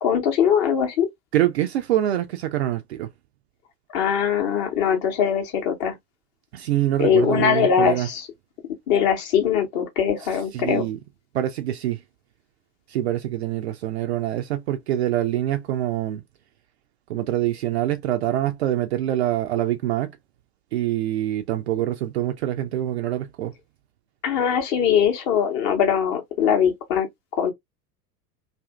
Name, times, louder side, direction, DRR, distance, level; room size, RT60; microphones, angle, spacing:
voice 1, 0.0-1.1 3.9-5.9 7.0-8.3 8.9-10.8 24.2-27.1 27.4-27.5, left 8 dB, 35° left, 0.9 m, -21 dB
voice 2, 1.3-3.1 6.5-8.1 10.5-11.0 11.3-12.0 12.9-16.2 17.1-20.2 20.7-23.5, right 12 dB, 45° right, 0.4 m, -25 dB
2.6 x 2.5 x 2.3 m
figure-of-eight pair, 85°, 50 cm